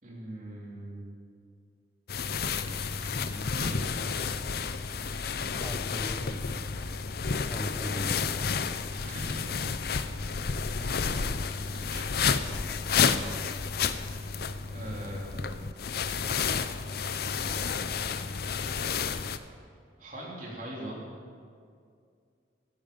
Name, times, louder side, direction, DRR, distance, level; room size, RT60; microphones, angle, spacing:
voice 1, 0.0-1.1 2.4-4.2 7.6-8.2 9.0-9.4 9.7-9.8 10.8-12.1 14.7-15.6 20.0-21.0, right 1 dB, 45° right, -3 dB, 3.4 m, -42 dB
sound 1, 2.1-19.4, left 5 dB, 55° left, 0.6 m, -31 dB
voice 2, 5.6-6.9 7.5-8.3, equal, 10° left, 2 dB, 0.7 m, -40 dB
14.0 x 13.0 x 5.3 m, 2.2 s
head